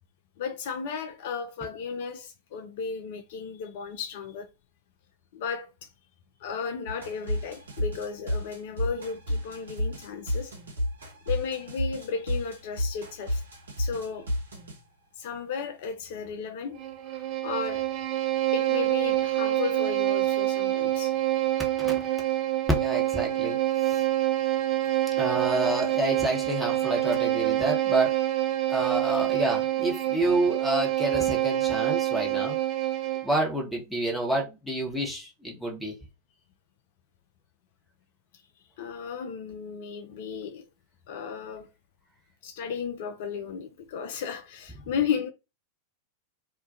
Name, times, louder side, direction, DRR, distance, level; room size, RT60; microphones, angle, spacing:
voice 1, 0.4-4.5 5.3-5.9 6.4-10.6 11.3-13.4 13.8-14.3 15.2-16.8 17.1-17.8 18.5-21.2 38.8-40.6 41.1-41.7 42.4-45.3, left 6 dB, 50° left, 0.3 m, -34 dB
sound 1, 6.9-14.8, left 1 dB, 70° right, 0.7 m, -31 dB
Bowed string instrument, 16.8-33.4, right 14 dB, 40° right, 0.3 m, -26 dB
voice 2, 22.8-23.6 23.9-24.0 25.2-28.1 28.7-32.6 33.2-35.9, right 2 dB, ahead, 0.9 m, -28 dB
2.3 x 2.1 x 2.6 m
figure-of-eight pair, 90°, 0 cm